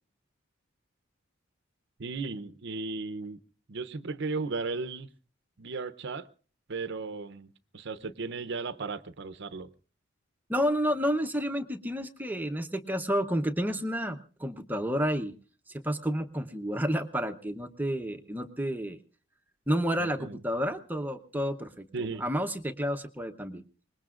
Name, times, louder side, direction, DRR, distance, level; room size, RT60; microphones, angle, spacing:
voice 1, 2.0-3.4 3.7-5.1 5.6-6.3 6.7-9.7 20.0-20.4 21.9-22.2, right 4 dB, 60° right, 0.7 m, -35 dB
voice 2, 10.5-15.3 15.7-19.0 19.7-23.6, equal, 10° right, 0.8 m, -30 dB
24.5 x 20.5 x 2.5 m
head